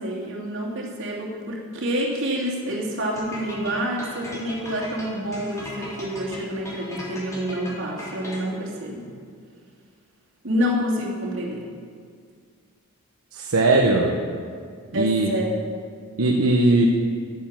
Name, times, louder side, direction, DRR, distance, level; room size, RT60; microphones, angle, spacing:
voice 1, 0.0-9.1 10.4-11.6 14.9-15.5, equal, 60° right, -4 dB, 2.8 m, -28 dB
sound 1, 3.2-8.7, left 1 dB, 15° left, 2.8 m, -38 dB
voice 2, 13.3-14.2 14.9-15.3 16.2-16.9, right 2 dB, 75° right, 0 dB, 1.0 m, -19 dB
11.5 x 9.3 x 7.4 m, 2.1 s
head